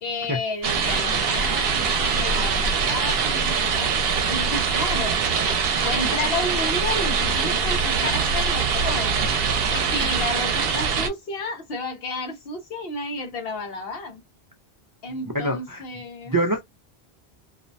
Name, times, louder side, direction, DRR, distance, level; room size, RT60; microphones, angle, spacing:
voice 1, 0.0-3.9 4.3-9.2 9.7-14.2 15.0-16.3, left 2 dB, 65° left, 1.0 m, -32 dB
sound 1, 0.6-11.1, right 5 dB, 70° right, 0.8 m, -23 dB
voice 2, 15.3-15.8 16.3-16.6, right 1 dB, 35° right, 0.3 m, -24 dB
2.5 x 2.0 x 2.6 m
omnidirectional pair, 1.1 m